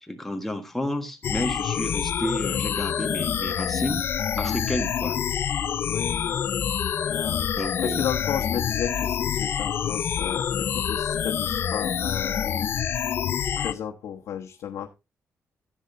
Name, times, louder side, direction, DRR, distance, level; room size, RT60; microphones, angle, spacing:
voice 1, 0.0-4.1 4.4-5.2 7.6-8.1, left 1 dB, 5° left, 5 dB, 1.4 m, -31 dB
sound 1, 1.2-13.7, left 8 dB, 45° left, 0.5 m, -27 dB
voice 2, 5.9-6.4 7.1-12.7 13.6-14.9, left 9 dB, 90° left, 0 dB, 1.1 m, -33 dB
14.5 x 8.2 x 2.6 m, 0.24 s
wide cardioid pair, 175°, 5 cm